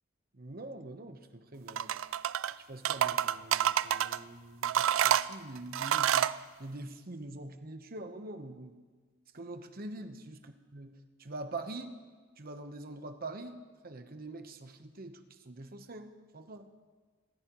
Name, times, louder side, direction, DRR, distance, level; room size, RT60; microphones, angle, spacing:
voice 1, 0.4-1.9 2.6-8.7 9.3-11.9 12.4-13.6 13.8-16.6, right 2 dB, 50° right, 7 dB, 1.0 m, -44 dB
sound 1, 1.7-2.5 2.8-4.2 4.6-6.4, right 10 dB, 85° right, 0.4 m, -28 dB
27.0 x 14.0 x 3.1 m, 1.4 s
head